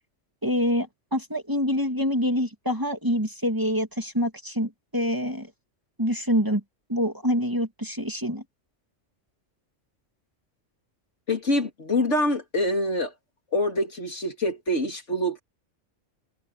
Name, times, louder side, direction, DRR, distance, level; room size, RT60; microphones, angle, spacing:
voice 1, 0.4-5.5 6.0-6.6 6.9-8.4, equal, 15° right, 2.4 m, -26 dB
voice 2, 11.3-13.1 13.5-15.4, left 1 dB, 70° left, 3.2 m, -25 dB
omnidirectional pair, 1.3 m